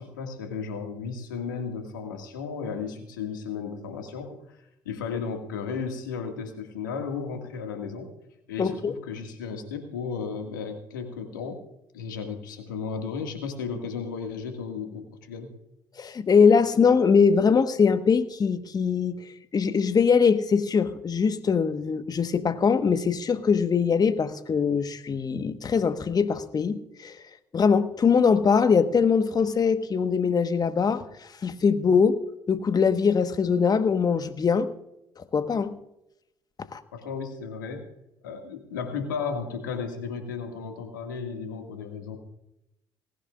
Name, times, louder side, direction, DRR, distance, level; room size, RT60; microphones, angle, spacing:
voice 1, 0.0-8.1 8.5-11.6 11.9-15.5 36.9-37.9 38.2-42.2, left 5 dB, 90° left, 4 dB, 1.9 m, -34 dB
voice 2, 8.6-8.9 16.0-19.1 19.5-27.2 27.5-31.0 31.4-32.2 32.5-34.7 35.3-35.7 36.7-36.8, left 6 dB, 40° left, 10 dB, 1.3 m, -22 dB
19.0 x 16.5 x 2.5 m, 0.83 s
hypercardioid pair, 55°, 10 cm